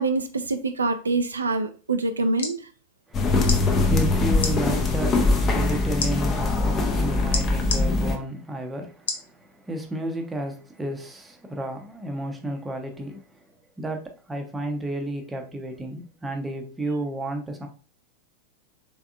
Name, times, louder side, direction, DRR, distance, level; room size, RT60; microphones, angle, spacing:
voice 1, 0.0-2.7, right 3 dB, 75° right, 0.3 m, -25 dB
sound 1, 2.1-2.6 3.4-3.6 4.4-4.5 6.0-6.1 7.3-7.8 9.1-9.3 9.9-10.0, left 4 dB, 65° left, 0.7 m, -28 dB
sound 2, 3.1-8.2, left 3 dB, 25° left, 0.6 m, -22 dB
voice 2, 3.1-13.4 13.8-17.7, right 1 dB, 10° right, 0.7 m, -32 dB
3.5 x 3.4 x 2.4 m
figure-of-eight pair, 90°, 0 cm